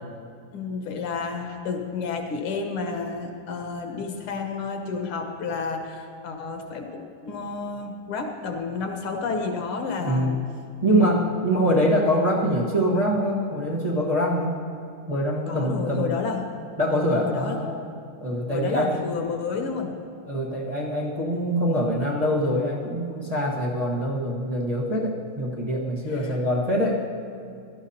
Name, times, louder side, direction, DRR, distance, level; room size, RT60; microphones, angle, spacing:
voice 1, 0.5-10.4 10.9-11.4 15.5-16.5 17.2-17.6 18.5-19.9 26.2-26.3, left 4 dB, 90° left, 3 dB, 2.0 m, -30 dB
voice 2, 10.0-10.4 10.8-14.6 15.1-16.1 16.8-17.8 18.2-19.0 20.2-27.1, equal, 25° right, -5 dB, 0.9 m, -24 dB
17.0 x 12.0 x 2.8 m, 2.5 s
omnidirectional pair, 2.3 m